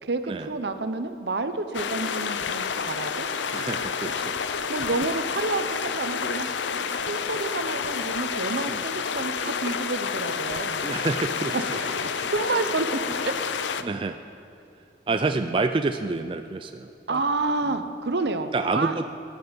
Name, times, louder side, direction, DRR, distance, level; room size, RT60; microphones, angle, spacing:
voice 1, 0.0-3.3 4.7-10.8 11.5-13.3 15.1-15.5 17.1-19.0, right 3 dB, 65° right, 9 dB, 0.8 m, -29 dB
sound 1, 1.7-13.8, left 6 dB, 80° left, 0.6 m, -29 dB
voice 2, 3.5-4.4 8.7-8.8 10.8-12.1 13.8-14.2 15.1-17.2 17.6-17.7 18.5-19.1, right 3 dB, 30° right, 7 dB, 0.3 m, -28 dB
19.0 x 10.0 x 5.3 m, 2.7 s
head